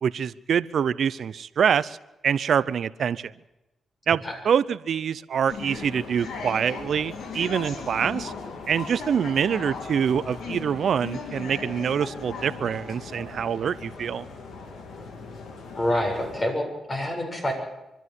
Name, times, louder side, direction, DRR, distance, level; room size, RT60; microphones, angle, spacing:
voice 1, 0.0-2.0 2.2-3.3 4.1-8.3 8.7-14.3, right 7 dB, 70° right, 18 dB, 0.7 m, -25 dB
sound 1, 5.5-16.5, left 4 dB, 80° left, 2.7 m, -37 dB
voice 2, 15.8-17.5, left 1 dB, 40° left, 2 dB, 7.4 m, -27 dB
24.5 x 12.0 x 9.7 m, 0.97 s
supercardioid pair, 50°, 0 cm